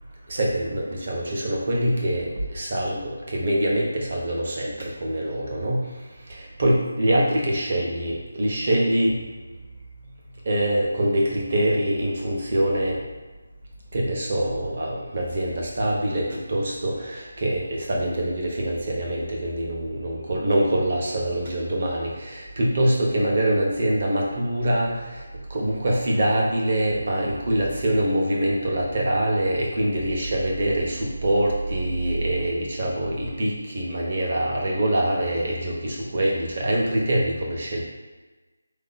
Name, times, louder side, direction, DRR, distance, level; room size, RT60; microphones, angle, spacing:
voice 1, 0.3-9.3 10.4-13.0 13.9-37.8, right 1 dB, 40° right, -2 dB, 0.8 m, -24 dB
4.2 x 2.8 x 3.9 m, 1.2 s
figure-of-eight pair, 175°, 0 cm